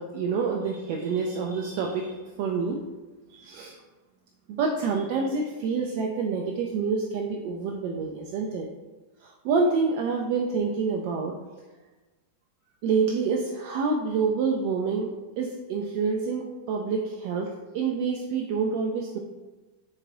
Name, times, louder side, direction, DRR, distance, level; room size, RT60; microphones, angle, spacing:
voice 1, 0.0-2.8 3.3-3.7 4.5-8.7 9.2-11.3 12.8-19.2, right 4 dB, 45° right, 0 dB, 0.3 m, -27 dB
3.5 x 3.0 x 2.5 m, 1.2 s
figure-of-eight pair, 90°, 0 cm